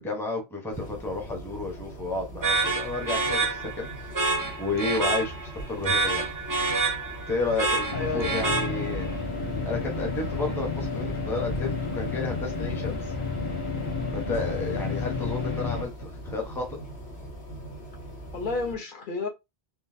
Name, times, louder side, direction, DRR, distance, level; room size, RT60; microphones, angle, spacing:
voice 1, 0.0-3.9 4.6-6.3 7.3-9.0 9.4-13.1 14.1-16.7, left 3 dB, 5° left, 0.7 m, -32 dB
sound 1, 0.7-18.8, right 1 dB, 80° left, 1.5 m, -41 dB
sound 2, 2.4-9.1, right 3 dB, 25° right, 0.4 m, -28 dB
voice 2, 7.9-8.3 18.3-19.3, left 3 dB, 55° left, 0.9 m, -30 dB
sound 3, 7.9-15.8, left 4 dB, 35° left, 0.7 m, -31 dB
3.8 x 2.3 x 2.7 m
omnidirectional pair, 1.1 m